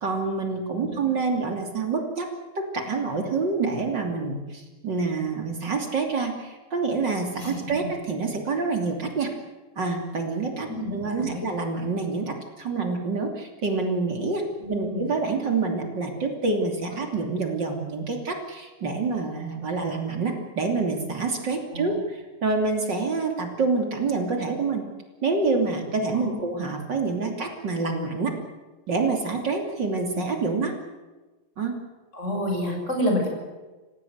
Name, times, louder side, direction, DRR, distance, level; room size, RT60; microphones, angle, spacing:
voice 1, 0.0-2.3 2.6-9.3 9.8-24.9 25.2-28.3 28.9-30.7 31.6-31.7, right 4 dB, 55° right, 2 dB, 3.5 m, -27 dB
voice 2, 7.4-7.9 10.7-11.4 14.6-15.1 21.7-22.0 26.1-26.4 30.1-30.2 32.1-33.3, left 1 dB, 35° left, 1 dB, 7.2 m, -29 dB
29.0 x 16.5 x 8.1 m, 1.2 s
omnidirectional pair, 2.3 m